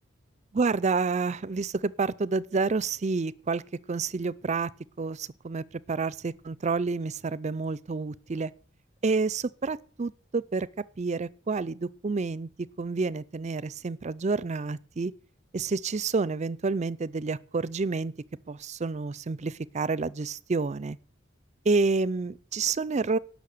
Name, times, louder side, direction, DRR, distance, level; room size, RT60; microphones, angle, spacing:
voice 1, 0.5-3.6 3.9-4.7 5.0-8.5 9.0-10.7 11.0-15.1 15.5-18.1 18.5-21.0 21.6-23.2, right 4 dB, 35° right, 0.5 m, -29 dB
11.5 x 6.3 x 8.4 m
head